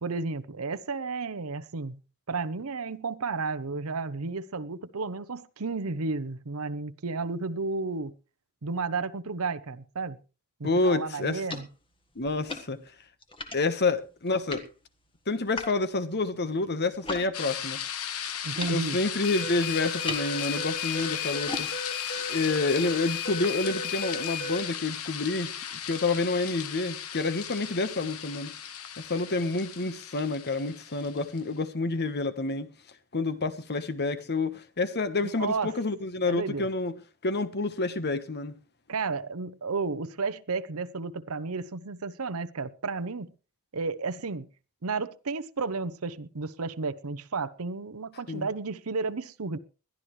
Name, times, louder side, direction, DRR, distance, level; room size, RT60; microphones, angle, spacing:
voice 1, 0.0-2.0 2.3-8.1 8.6-10.2 10.6-11.7 18.4-19.0 35.4-35.7 36.3-36.7 38.9-43.3 43.7-44.5 44.8-49.6, right 4 dB, 70° right, 0.8 m, -32 dB
voice 2, 10.6-11.4 12.1-12.8 13.5-14.6 15.3-17.8 18.7-21.7 22.3-25.5 25.8-28.5 29.0-32.7 33.1-36.9 37.2-38.5 48.3-48.5, left 3 dB, 50° left, 1.2 m, -28 dB
sound 1, 10.8-17.3 17.6-23.4, left 2 dB, 25° left, 1.6 m, -42 dB
sound 2, 17.3-31.4, left 9 dB, 70° left, 1.3 m, -36 dB
sound 3, 19.2-24.6, left 5 dB, 90° left, 3.3 m, -35 dB
21.0 x 12.5 x 3.2 m
head